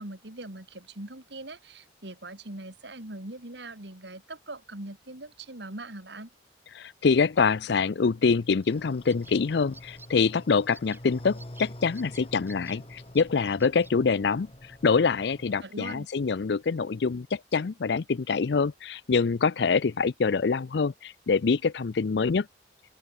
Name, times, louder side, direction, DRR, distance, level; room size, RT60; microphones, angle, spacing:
voice 1, 0.0-6.3 15.6-16.1, right 2 dB, 65° right, 3.1 m, -41 dB
voice 2, 6.8-14.5 14.8-22.5, left 5 dB, 60° left, 0.5 m, -25 dB
sound 1, 8.5-8.8 9.1-9.4 9.7-10.3 10.7-11.0 11.4-11.7 11.9-12.8 13.1-13.2 13.6-13.9, right 3 dB, 10° right, 3.0 m, -50 dB
sound 2, 8.6-15.6, left 1 dB, 30° left, 2.0 m, -46 dB
open air
head